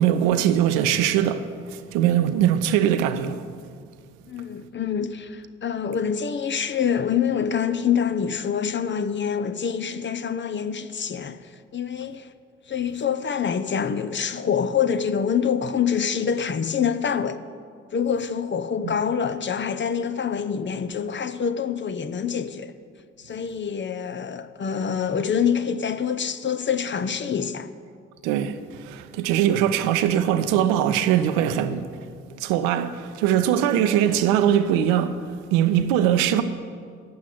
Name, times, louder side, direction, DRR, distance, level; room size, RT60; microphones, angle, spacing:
voice 1, 0.0-3.4 18.8-18.9 28.2-31.9 32.4-35.2 35.5-36.4, right 10 dB, 80° right, 0.7 m, -21 dB
voice 2, 4.3-12.3 12.7-17.4 17.9-22.7 23.2-27.7, left 7 dB, 35° left, 0.7 m, -26 dB
9.3 x 7.8 x 8.6 m
hypercardioid pair, 45°, 32 cm